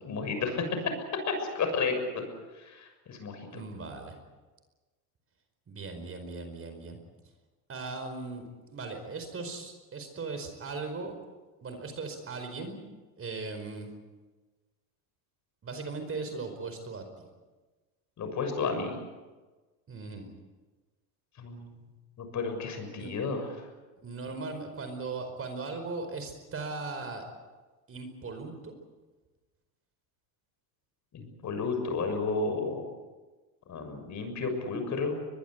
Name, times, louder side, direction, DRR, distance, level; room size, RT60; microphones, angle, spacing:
voice 1, 0.0-0.9 1.3-2.2 2.6-3.6 18.2-18.9 21.4-21.8 22.2-23.5 31.1-32.8 33.7-35.1, left 4 dB, 40° left, 6 dB, 6.8 m, -32 dB
voice 2, 3.5-4.2 5.7-7.0 7.7-8.4 8.7-11.2 11.6-12.8 13.2-13.9 15.6-17.3 19.9-20.3 23.0-23.1 24.0-27.2 27.9-28.7, right 3 dB, 30° right, 7 dB, 4.9 m, -38 dB
22.5 x 22.0 x 8.2 m, 1.3 s
supercardioid pair, 105°, 46 cm